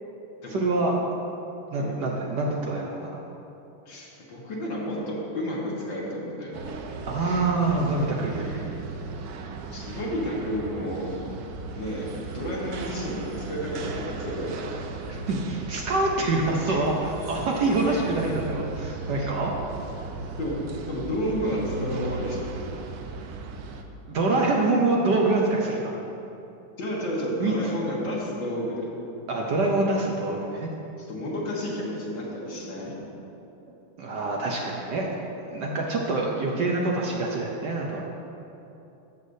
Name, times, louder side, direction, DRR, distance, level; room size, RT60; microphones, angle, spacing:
voice 1, 0.5-0.9 1.7-3.2 7.1-8.6 15.1-19.5 24.1-25.9 27.4-27.5 29.3-30.7 34.0-35.1 35.4-38.0, right 2 dB, 65° right, -1 dB, 1.2 m, -25 dB
voice 2, 3.9-6.6 7.2-7.5 8.4-8.6 9.7-11.2 11.8-14.7 16.7-16.8 17.9-18.0 19.2-19.3 20.4-20.6 20.9-22.6 26.8-28.9 31.1-32.9, equal, 60° left, -4 dB, 2.2 m, -31 dB
sound 1, 6.5-23.8, right 3 dB, 85° right, 0.8 m, -36 dB
12.5 x 8.2 x 2.7 m, 2.9 s
omnidirectional pair, 2.4 m